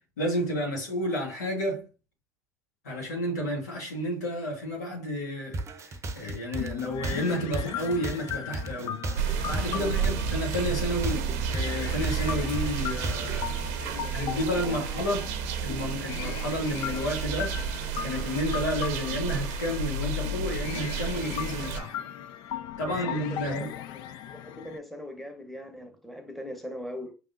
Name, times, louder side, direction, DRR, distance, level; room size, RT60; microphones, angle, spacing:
voice 1, 0.2-1.9 2.8-13.6 14.1-15.3 15.6-22.0 22.8-23.7, equal, 85° left, 1.8 m, -31 dB
sound 1, 5.5-13.5, right 2 dB, 30° right, 0.7 m, -35 dB
sound 2, 6.6-24.8, left 10 dB, 60° left, 0.5 m, -38 dB
sound 3, 9.2-21.8, right 6 dB, 70° right, 0.7 m, -31 dB
voice 2, 9.7-10.2 13.7-14.8 22.8-24.0 24.3-27.1, left 1 dB, ahead, 1.0 m, -41 dB
5.3 x 3.5 x 2.7 m
hypercardioid pair, 75°, 9 cm